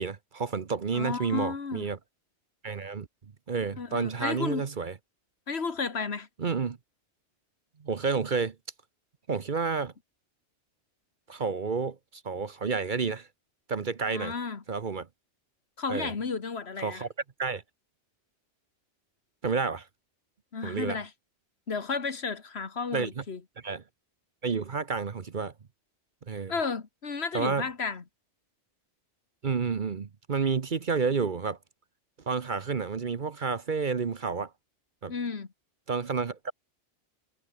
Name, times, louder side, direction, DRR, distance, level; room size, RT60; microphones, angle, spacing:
voice 1, 0.0-2.0 2.6-3.1 3.5-4.9 6.4-6.8 7.8-8.6 9.3-9.9 11.3-13.3 13.7-14.3 14.7-15.1 15.9-16.1 16.8-17.1 17.4-17.6 19.4-19.9 20.6-21.0 22.9-23.2 23.6-23.8 24.4-25.5 26.3-26.5 27.3-27.7 29.4-31.6 32.3-34.5 35.0-35.1 35.9-36.5, right 5 dB, 45° right, 1.0 m, -30 dB
voice 2, 0.9-1.9 3.8-4.6 5.5-6.3 14.1-14.6 15.8-17.0 20.5-21.1 21.7-23.4 26.5-28.0 35.1-35.5, left 5 dB, 60° left, 1.9 m, -33 dB
omnidirectional pair, 1.2 m